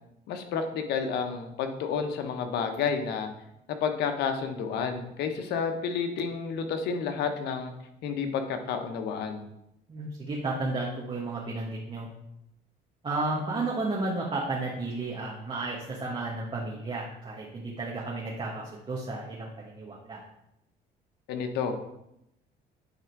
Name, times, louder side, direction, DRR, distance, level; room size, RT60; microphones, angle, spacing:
voice 1, 0.3-3.3 3.8-7.7 8.0-9.4 21.3-21.8, left 6 dB, 80° left, 6 dB, 1.1 m, -30 dB
voice 2, 9.9-12.1 13.0-20.2, right 2 dB, 30° right, -3 dB, 1.4 m, -33 dB
9.7 x 3.7 x 4.6 m, 0.82 s
cardioid pair, 110°, 17 cm